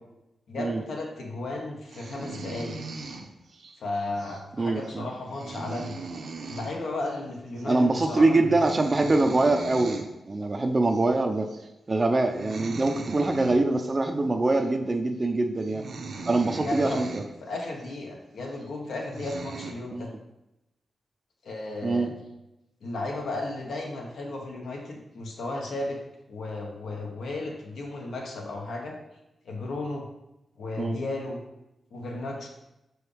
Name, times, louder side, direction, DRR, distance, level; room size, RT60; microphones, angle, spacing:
voice 1, 0.5-2.8 3.8-6.0 6.4-8.5 16.6-17.0 17.4-20.1 21.4-22.1 22.8-26.0 26.3-29.0 29.4-30.1 30.6-31.4 31.9-32.5, left 2 dB, 85° left, 0 dB, 1.2 m, -34 dB
sound 1, 1.9-3.7 4.2-4.4 4.8-4.9 5.2-6.8 7.0-7.2 7.5-7.7 8.0-8.2 8.5-10.1 10.9-11.0 11.5-11.7 12.2-13.9 14.5-14.7 15.3-15.4 15.6-17.3 17.8-17.9 18.6-18.7 19.0-19.7, right 4 dB, 65° right, 0.7 m, -39 dB
voice 2, 4.6-5.1 7.7-11.5 11.9-15.8 16.3-17.2 19.9-20.1 21.8-22.1 30.8-31.0, right 2 dB, 25° right, 4 dB, 0.4 m, -24 dB
6.1 x 4.7 x 3.4 m, 0.92 s
wide cardioid pair, 130°, 0 cm